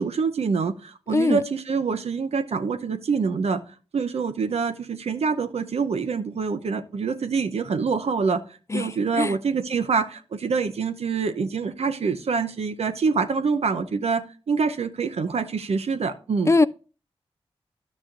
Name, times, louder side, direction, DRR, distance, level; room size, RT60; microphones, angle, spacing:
voice 1, 0.0-3.6 3.9-8.4 8.7-16.5, right 5 dB, 70° right, 0.7 m, -25 dB
voice 2, 1.1-1.4 8.7-9.4 16.5-16.7, left 3 dB, 25° left, 0.3 m, -21 dB
11.5 x 6.2 x 2.6 m
cardioid pair, 40°, 11 cm